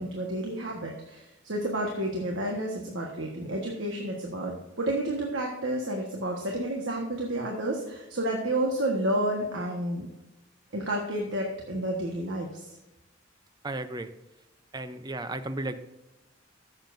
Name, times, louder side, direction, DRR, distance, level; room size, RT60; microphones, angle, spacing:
voice 1, 0.0-10.1 10.7-12.8, right 1 dB, 65° right, -1 dB, 1.4 m, -30 dB
voice 2, 13.6-14.1 14.7-15.8, right 2 dB, 20° right, 10 dB, 0.6 m, -34 dB
14.0 x 7.3 x 2.6 m, 0.99 s
head